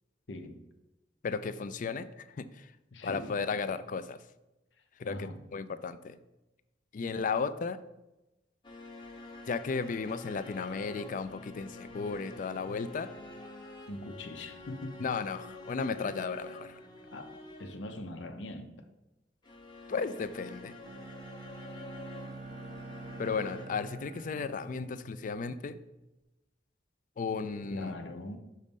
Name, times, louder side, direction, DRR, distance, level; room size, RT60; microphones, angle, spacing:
voice 1, 0.3-0.6 2.9-3.3 5.0-5.4 13.9-15.0 17.1-18.9 27.7-28.4, left 1 dB, 90° left, 7 dB, 0.8 m, -42 dB
voice 2, 1.2-2.7 3.0-4.2 5.0-6.2 6.9-7.8 9.5-13.1 15.0-16.8 19.9-20.8 23.2-25.8 27.2-28.0, left 5 dB, 45° left, 13 dB, 0.4 m, -34 dB
sound 1, 8.6-17.9 19.4-23.7, left 2 dB, 25° left, 0.8 m, -48 dB
Bowed string instrument, 20.8-25.8, right 3 dB, 50° right, 0.4 m, -47 dB
6.5 x 4.1 x 5.3 m, 0.98 s
head